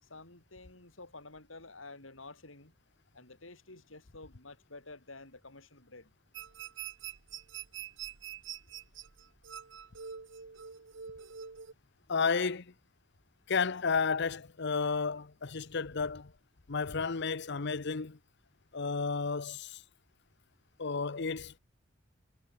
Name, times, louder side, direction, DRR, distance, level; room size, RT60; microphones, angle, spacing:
voice 1, 0.0-2.7 3.1-6.1 12.0-12.1, left 3 dB, 85° left, 5.7 m, -50 dB
sound 1, 6.3-11.7, right 8 dB, 70° right, 1.1 m, -45 dB
voice 2, 12.1-12.7 13.5-16.3 16.7-18.2 18.7-19.8 20.8-21.6, left 5 dB, 60° left, 0.9 m, -32 dB
head